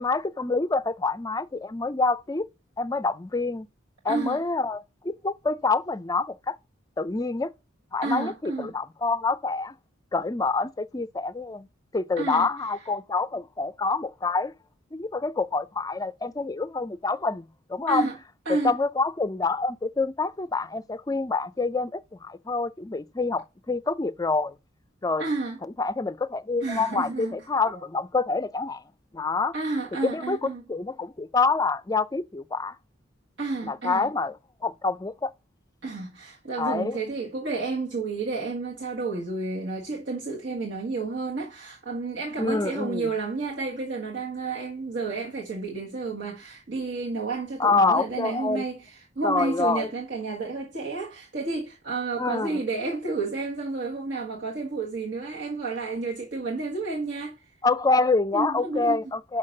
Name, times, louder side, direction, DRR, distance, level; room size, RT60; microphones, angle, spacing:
voice 1, 0.0-2.4 2.8-3.7 4.0-6.6 7.0-7.5 7.9-9.7 10.1-11.7 11.9-14.5 14.9-17.4 17.7-18.1 18.6-24.5 25.0-25.3 25.8-28.8 29.1-29.5 30.0-32.7 33.6-34.3 34.6-35.3 36.6-37.0 42.4-43.1 47.6-48.6 49.2-49.9 52.2-52.6 57.6-59.4, left 3 dB, 20° left, 0.4 m, -26 dB
voice 2, 4.1-4.4 8.0-8.7 12.2-12.5 17.9-18.2 18.4-18.7 25.2-25.6 26.6-27.3 29.5-30.6 33.4-34.1 35.8-57.5 58.3-59.0, right 3 dB, 65° right, 1.5 m, -31 dB
5.7 x 5.7 x 6.4 m
head